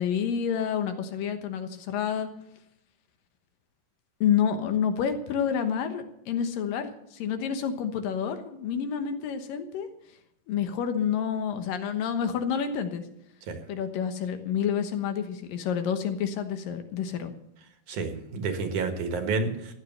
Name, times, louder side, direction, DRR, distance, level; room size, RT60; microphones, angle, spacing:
voice 1, 0.0-2.3 4.2-9.9 10.5-13.0 13.7-17.3, left 8 dB, 80° left, 8 dB, 2.9 m, -28 dB
voice 2, 17.9-19.7, right 4 dB, 65° right, 6 dB, 3.0 m, -30 dB
14.5 x 10.5 x 6.7 m, 0.78 s
omnidirectional pair, 3.9 m